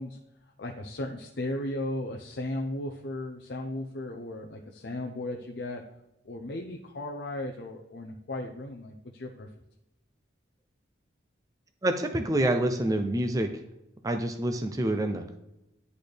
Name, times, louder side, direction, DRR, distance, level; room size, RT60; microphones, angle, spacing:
voice 1, 0.0-5.8 6.2-9.5, left 1 dB, 60° left, 1 dB, 0.6 m, -36 dB
voice 2, 11.8-13.5 14.0-15.4, right 1 dB, 20° right, 6 dB, 0.4 m, -27 dB
10.5 x 4.1 x 3.3 m, 0.91 s
head